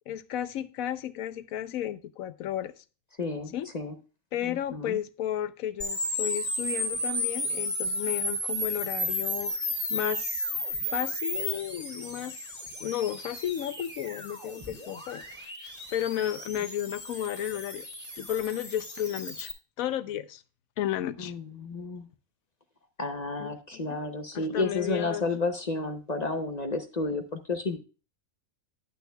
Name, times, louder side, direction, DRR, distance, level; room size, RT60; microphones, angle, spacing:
voice 1, 0.1-2.8 3.5-3.7 4.3-9.5 9.9-10.5 10.9-15.2 15.6-17.9 18.2-19.5 19.8-20.4 20.8-21.3 23.4-24.0 24.3-25.2, left 11 dB, 75° left, 1.1 m, -33 dB
voice 2, 3.2-3.9 4.4-5.0 21.2-22.0 23.0-27.8, left 3 dB, 35° left, 0.8 m, -31 dB
sound 1, 5.8-19.5, left 1 dB, 5° left, 2.4 m, -33 dB
11.5 x 9.0 x 2.3 m
omnidirectional pair, 1.5 m